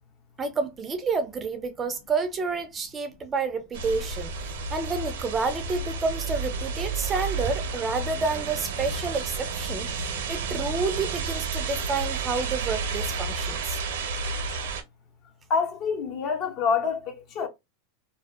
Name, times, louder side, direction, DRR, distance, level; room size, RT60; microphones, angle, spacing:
voice 1, 0.4-13.8, right 4 dB, 20° right, 0.4 m, -29 dB
sound 1, 3.7-14.8, right 4 dB, 85° right, 0.6 m, -31 dB
voice 2, 15.5-17.5, left 5 dB, 40° left, 0.5 m, -26 dB
2.5 x 2.1 x 2.3 m
supercardioid pair, 145°, 0 cm